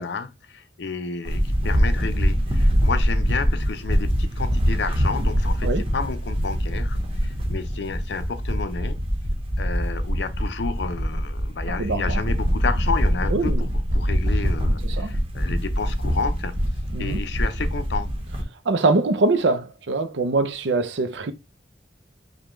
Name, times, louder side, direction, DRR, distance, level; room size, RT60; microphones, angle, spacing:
voice 1, 0.0-9.0 9.6-16.5 17.0-18.1, left 4 dB, 70° left, 0.5 m, -31 dB
sound 1, 1.2-18.4, equal, 30° right, 0.9 m, -24 dB
voice 2, 11.8-12.2 13.3-13.7 14.8-15.1 16.9-17.2 18.7-21.3, right 3 dB, 85° right, 0.6 m, -23 dB
5.2 x 2.2 x 3.1 m
head